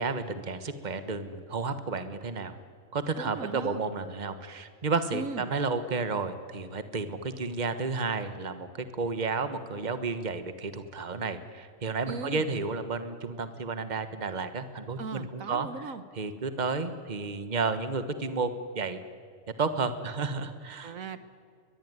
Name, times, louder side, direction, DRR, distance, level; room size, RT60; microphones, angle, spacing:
voice 1, 0.0-2.6 2.9-15.7 16.2-19.0 19.6-21.0, right 4 dB, 35° right, 10 dB, 1.4 m, -32 dB
voice 2, 3.2-3.8 5.1-5.4 12.1-12.5 15.0-16.0 20.8-21.2, right 4 dB, 80° right, 12 dB, 1.6 m, -38 dB
22.0 x 22.0 x 9.6 m, 2.2 s
omnidirectional pair, 1.4 m